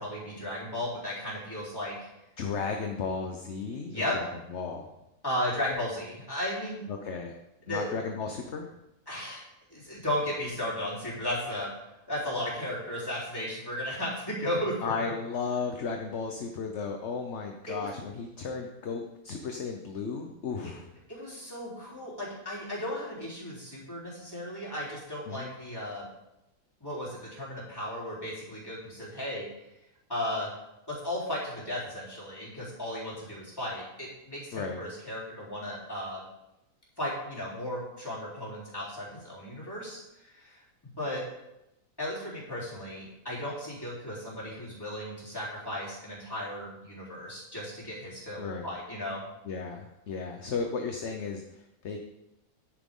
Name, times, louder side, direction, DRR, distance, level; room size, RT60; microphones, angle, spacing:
voice 1, 0.0-2.1 3.9-4.2 5.2-6.9 7.7-7.9 9.1-9.4 9.7-15.1 17.7-17.9 21.1-26.1 26.8-29.5 30.1-30.5 30.9-36.2 37.0-40.6 41.0-41.2 42.0-49.2, left 1 dB, 15° left, -8 dB, 3.8 m, -35 dB
voice 2, 2.4-4.9 6.9-7.3 7.7-8.7 14.8-20.9 25.3-25.5 34.5-34.8 48.4-48.7 49.4-52.0, left 5 dB, 55° left, 3 dB, 1.0 m, -34 dB
10.0 x 9.2 x 3.8 m, 0.91 s
omnidirectional pair, 1.6 m